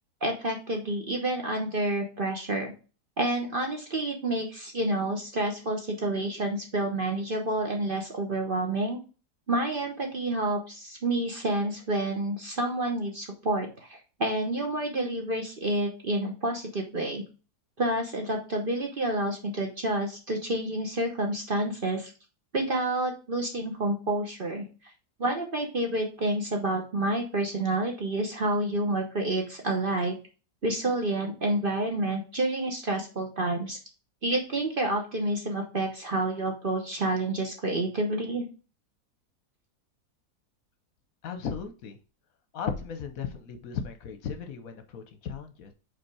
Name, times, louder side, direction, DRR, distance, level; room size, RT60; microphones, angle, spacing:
voice 1, 0.2-2.7 3.2-9.0 9.5-17.2 17.8-22.1 22.5-24.7 25.2-30.1 30.6-33.8 34.2-38.5, right 1 dB, 40° right, 2 dB, 1.0 m, -29 dB
voice 2, 41.2-42.0 42.5-45.7, left 7 dB, 65° left, 7 dB, 1.1 m, -36 dB
5.2 x 4.2 x 4.7 m, 0.34 s
omnidirectional pair, 1.7 m